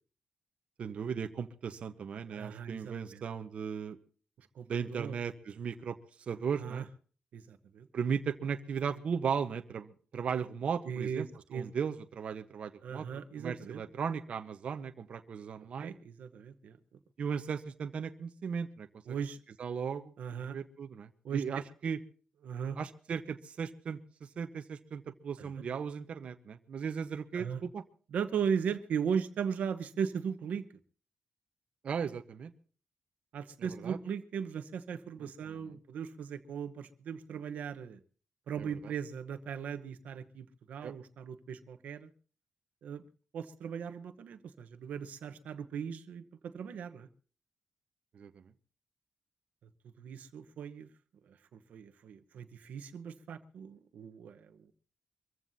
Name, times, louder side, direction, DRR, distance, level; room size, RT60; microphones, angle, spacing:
voice 1, 0.8-4.0 4.7-6.0 6.3-6.9 7.9-11.3 11.5-13.1 13.4-15.9 17.2-18.9 19.6-20.1 20.4-22.0 22.8-24.0 24.4-27.8 31.8-32.5 33.6-34.0 38.6-38.9 40.8-40.9 48.1-48.4, right 6 dB, 50° right, 7 dB, 1.0 m, -36 dB
voice 2, 2.3-3.2 4.4-5.1 6.6-6.8 7.3-7.9 10.8-11.7 12.8-13.8 15.8-16.8 19.1-19.4 20.2-20.6 21.2-21.6 22.4-22.8 25.4-25.5 27.3-27.6 28.1-30.6 33.3-38.0 38.5-42.1 42.8-43.0 43.3-47.1 50.0-50.9 51.3-54.7, right 7 dB, 75° right, 8 dB, 1.0 m, -38 dB
24.5 x 15.0 x 2.8 m, 0.41 s
wide cardioid pair, 165°, 3 cm